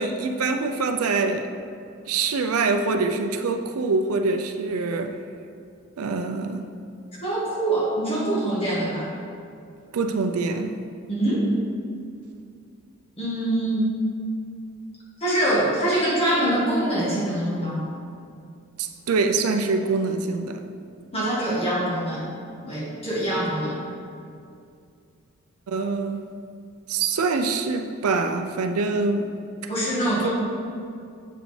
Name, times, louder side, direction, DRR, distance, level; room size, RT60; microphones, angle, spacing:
voice 1, 0.0-1.5 2.1-5.2 6.0-6.6 9.9-10.7 18.8-20.6 25.7-26.3 26.9-29.3 30.2-30.3, right 4 dB, 90° right, 6 dB, 0.5 m, -24 dB
voice 2, 7.2-9.1 11.1-11.5 13.2-13.9 15.2-17.8 21.1-22.3 22.6-23.8 29.7-30.3, right 1 dB, 25° left, -6 dB, 1.4 m, -24 dB
7.5 x 5.1 x 3.2 m, 2.4 s
head